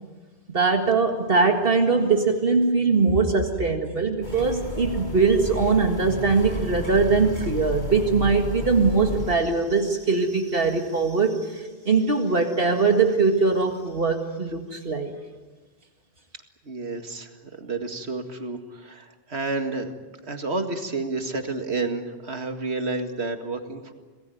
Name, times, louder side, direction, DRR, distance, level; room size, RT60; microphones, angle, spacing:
voice 1, 0.5-15.1, right 4 dB, 60° right, 4 dB, 2.1 m, -21 dB
sound 1, 4.2-9.3, left 1 dB, 45° left, 4.4 m, -32 dB
voice 2, 16.6-20.0 20.2-23.9, right 3 dB, 85° right, 6 dB, 2.3 m, -30 dB
27.0 x 20.0 x 9.3 m, 1.3 s
omnidirectional pair, 1.1 m